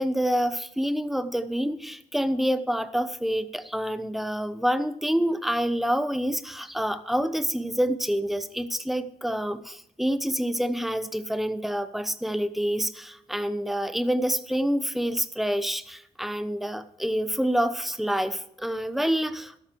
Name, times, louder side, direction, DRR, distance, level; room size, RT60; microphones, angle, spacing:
voice 1, 0.0-19.6, equal, ahead, 11 dB, 0.9 m, -27 dB
14.0 x 12.0 x 4.6 m, 0.73 s
cardioid pair, 135°, 12 cm